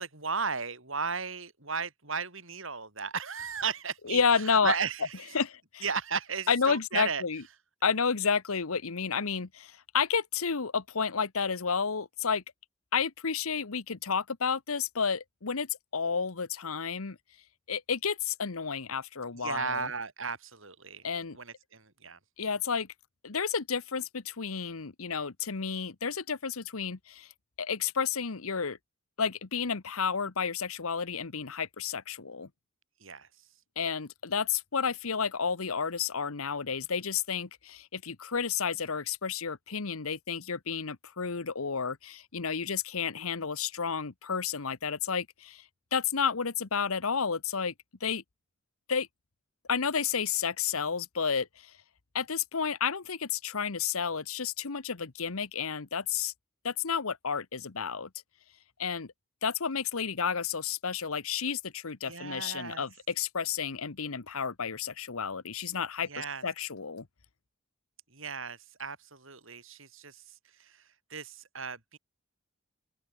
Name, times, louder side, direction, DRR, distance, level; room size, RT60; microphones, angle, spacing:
voice 1, 0.0-5.3 5.8-7.2 19.3-21.0 21.3-22.2 33.0-33.3 62.0-62.9 66.1-66.4 68.1-70.8 71.1-72.0, right 5 dB, 65° right, 7.9 m, -35 dB
voice 2, 4.1-4.7 5.3-5.8 6.5-7.4 7.8-12.4 12.9-17.2 17.7-19.9 21.0-21.4 22.4-22.9 23.2-27.3 27.6-28.8 29.2-32.5 33.8-45.6 45.9-47.7 48.0-48.2 48.9-49.1 49.7-51.7 52.1-56.3 56.6-58.1 58.8-59.1 59.4-67.1, left 6 dB, 80° left, 1.1 m, -31 dB
open air
head